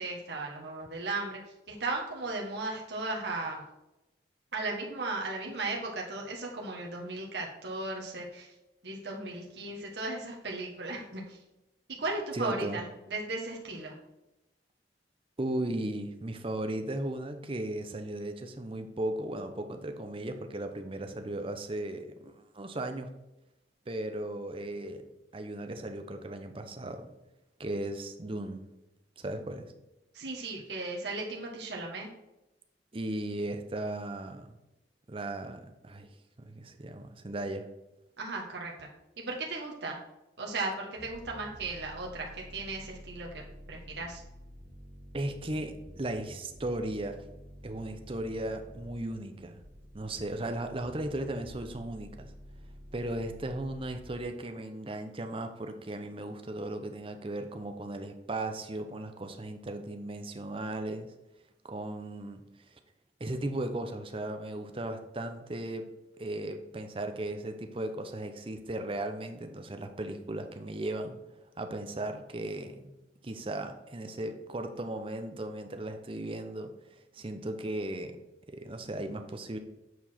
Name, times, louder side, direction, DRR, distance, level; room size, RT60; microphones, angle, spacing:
voice 1, 0.0-1.4 1.7-3.6 4.5-8.5 8.8-11.4 12.0-14.0 30.1-32.1 38.2-38.9 39.2-40.0 40.4-43.4 43.7-44.2, right 3 dB, 70° right, -1 dB, 1.2 m, -36 dB
voice 2, 12.3-12.8 15.4-23.1 23.9-25.0 25.3-27.1 27.6-28.7 29.2-29.7 32.9-34.6 35.1-36.1 36.4-37.7 45.1-47.2 47.6-49.6 49.9-52.3 52.9-61.1 61.7-62.4 63.2-65.9 66.2-71.2 71.6-72.9 73.2-76.7 77.1-78.2 78.5-79.6, right 1 dB, 30° right, 7 dB, 0.7 m, -36 dB
sound 1, 41.0-54.2, equal, 50° right, 1.3 m, -50 dB
8.1 x 4.7 x 4.3 m, 0.95 s
head